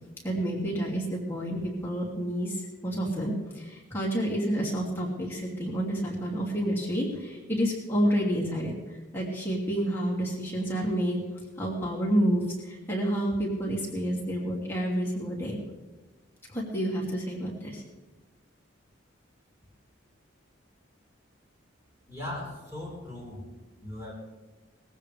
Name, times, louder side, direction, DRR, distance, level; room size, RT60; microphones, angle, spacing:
voice 1, 0.2-11.2 11.6-15.6 16.5-17.8, right 1 dB, 10° left, -4 dB, 2.6 m, -29 dB
voice 2, 22.1-23.4 23.8-24.1, left 1 dB, 15° right, -5 dB, 4.7 m, -38 dB
20.0 x 15.0 x 3.4 m, 1.2 s
head